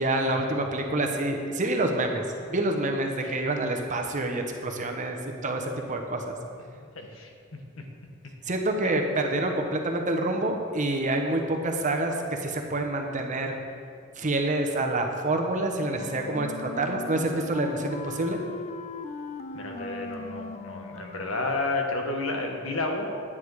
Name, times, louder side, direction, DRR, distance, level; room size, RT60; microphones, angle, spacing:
voice 1, 0.0-2.2 2.5-6.3 8.4-13.6 14.2-18.4, right 2 dB, 35° right, 3 dB, 1.0 m, -27 dB
voice 2, 6.7-7.3 8.8-9.1 19.5-23.2, left 2 dB, 85° left, 3 dB, 1.3 m, -31 dB
Wind instrument woodwind instrument, 15.5-21.6, left 3 dB, 35° left, 0.5 m, -39 dB
9.9 x 9.4 x 4.8 m, 2.3 s
head